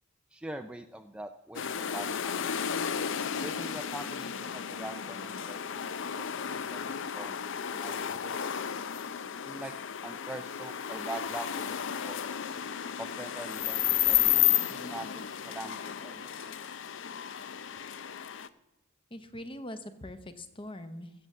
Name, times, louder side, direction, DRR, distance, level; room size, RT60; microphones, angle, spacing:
voice 1, 0.3-2.6 3.4-7.4 7.7-8.4 9.4-9.7 10.0-12.2 13.0-16.5, right 1 dB, 5° right, 6 dB, 0.4 m, -43 dB
sound 1, 1.5-18.5, left 10 dB, 60° left, 0.5 m, -32 dB
voice 2, 19.1-21.1, left 1 dB, 25° left, 10 dB, 0.9 m, -42 dB
15.5 x 6.8 x 7.5 m, 0.92 s
head